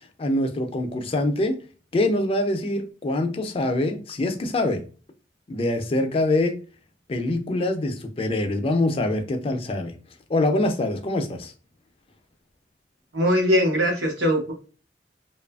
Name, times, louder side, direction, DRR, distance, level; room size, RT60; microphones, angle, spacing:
voice 1, 0.2-1.6 1.9-4.8 5.5-6.6 7.1-9.9 10.3-11.5, left 2 dB, 30° left, 0.4 m, -24 dB
voice 2, 13.1-14.5, equal, 80° right, 1.0 m, -21 dB
2.8 x 2.4 x 2.2 m
head